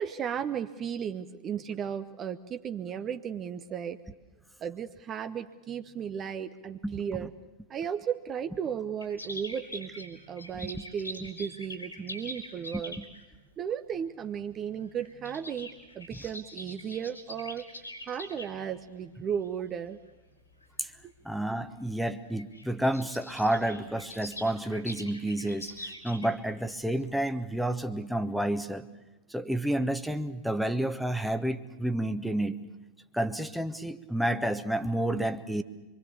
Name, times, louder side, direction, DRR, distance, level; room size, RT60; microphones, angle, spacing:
voice 1, 0.0-4.0 4.6-7.3 7.7-13.0 13.6-17.7 18.1-20.0 21.0-21.1, right 8 dB, 30° right, 9 dB, 0.9 m, -35 dB
voice 2, 6.8-7.3 10.6-10.8 13.0-13.1 20.8-20.9 21.2-28.9 29.3-32.6 33.1-35.6, right 1 dB, ahead, 8 dB, 1.2 m, -30 dB
sound 1, 9.0-13.2 14.3-14.5 14.8-18.5 19.1-19.5 20.1-20.2 20.5-20.7 21.6-21.7 22.0-22.1 22.2-26.6 27.0-27.1, left 1 dB, 85° left, 5.3 m, -43 dB
25.5 x 24.0 x 7.1 m, 1.1 s
figure-of-eight pair, 90°, 0 cm